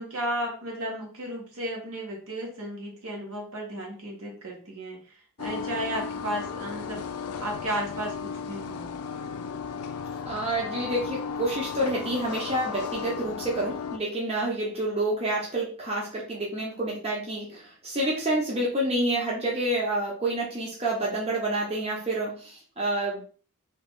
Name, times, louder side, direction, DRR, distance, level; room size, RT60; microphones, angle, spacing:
voice 1, 0.0-7.1 7.4-9.0, right 1 dB, 65° right, -1 dB, 1.2 m, -34 dB
sound 1, 5.4-14.0, left 6 dB, 75° left, 0.4 m, -35 dB
voice 2, 10.3-23.2, right 1 dB, 30° right, -3 dB, 0.9 m, -28 dB
3.0 x 2.9 x 3.5 m, 0.41 s
head